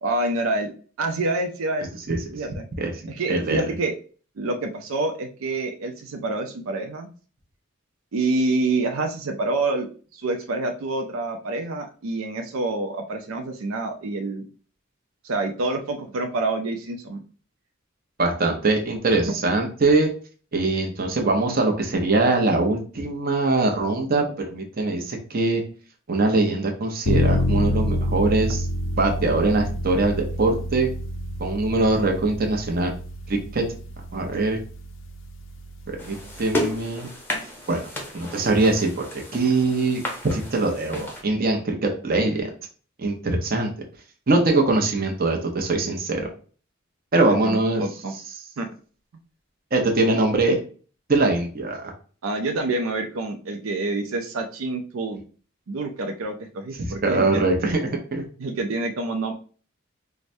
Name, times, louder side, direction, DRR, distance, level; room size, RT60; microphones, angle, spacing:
voice 1, 0.0-0.7 1.0-1.9 2.3-2.6 3.1-3.9 4.4-7.1 8.1-9.9 10.1-14.5 15.2-17.2 19.3-19.4 47.2-48.1 48.6-48.7 52.2-55.2 55.7-57.4 58.4-59.3, right 2 dB, 85° right, 5 dB, 0.5 m, -27 dB
voice 2, 2.8-3.6 18.2-20.1 20.5-25.6 26.1-28.7 29.0-30.9 31.4-32.9 33.3-33.6 34.1-34.6 35.9-37.1 37.7-42.5 43.0-43.7 44.3-46.3 47.1-47.8 49.7-50.6 51.1-51.9 57.0-58.2, right 2 dB, 45° right, 3 dB, 0.7 m, -22 dB
sound 1, 27.1-36.8, left 1 dB, 65° left, 0.4 m, -28 dB
sound 2, 36.0-41.2, left 1 dB, 10° left, 0.6 m, -33 dB
4.7 x 2.1 x 2.6 m, 0.40 s
head